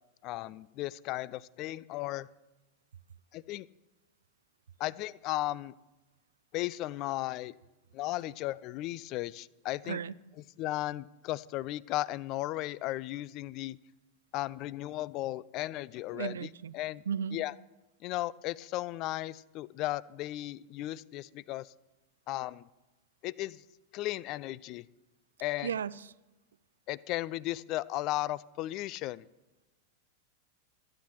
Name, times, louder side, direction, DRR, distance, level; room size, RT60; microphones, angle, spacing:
voice 1, 0.2-2.3 3.3-3.7 4.8-5.7 6.5-7.5 7.9-10.0 10.6-13.8 14.3-16.3 16.7-17.0 17.3-17.5 18.0-21.7 22.3-22.7 23.2-23.6 23.9-24.9 25.4-25.7 26.9-29.2, left 16 dB, 40° left, 22 dB, 0.3 m, -35 dB
voice 2, 9.8-10.1 16.1-16.8 17.1-17.4 25.6-26.1, right 7 dB, 65° right, 20 dB, 0.3 m, -35 dB
25.5 x 9.7 x 3.1 m, 1.1 s
figure-of-eight pair, 90°, 0 cm